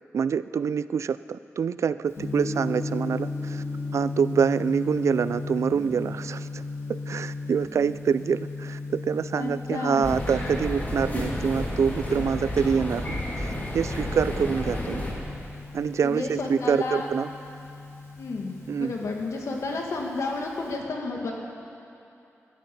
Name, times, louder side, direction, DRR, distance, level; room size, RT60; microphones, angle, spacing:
voice 1, 0.1-3.6 3.9-6.6 6.9-15.0 15.7-17.3 18.7-18.9, right 6 dB, 75° right, 15 dB, 0.4 m, -26 dB
Gong, 2.1-20.7, left 3 dB, 60° left, 2.7 m, -36 dB
voice 2, 9.4-10.1 16.0-17.1 18.2-21.3, left 3 dB, 85° left, 0 dB, 2.2 m, -31 dB
sound 1, 10.0-15.1, left 1 dB, 35° left, 2.8 m, -31 dB
20.5 x 12.5 x 5.4 m, 2.8 s
wide cardioid pair, 125°, 5 cm